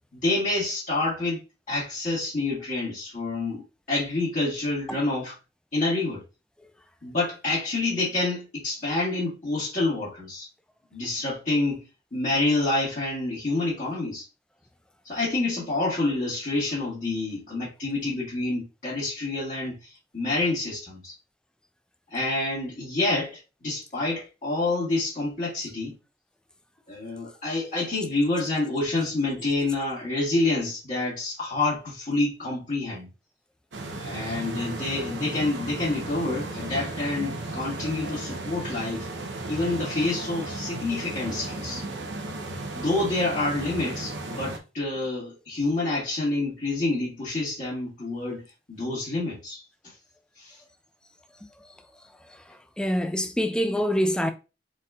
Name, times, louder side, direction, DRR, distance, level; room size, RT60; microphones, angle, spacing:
voice 1, 0.1-1.4 1.7-5.4 5.7-6.2 7.0-10.5 10.9-11.9 12.1-14.2 15.0-19.8 20.1-21.1 22.1-25.9 26.9-33.1 34.0-39.1 39.5-41.8 42.7-48.4 48.7-49.6 50.4-50.5, left 2 dB, 45° left, 1.8 m, -27 dB
sound 1, 33.7-44.6, right 2 dB, 80° right, 0.8 m, -35 dB
voice 2, 52.8-54.3, equal, 5° left, 0.4 m, -25 dB
4.1 x 4.1 x 2.4 m
head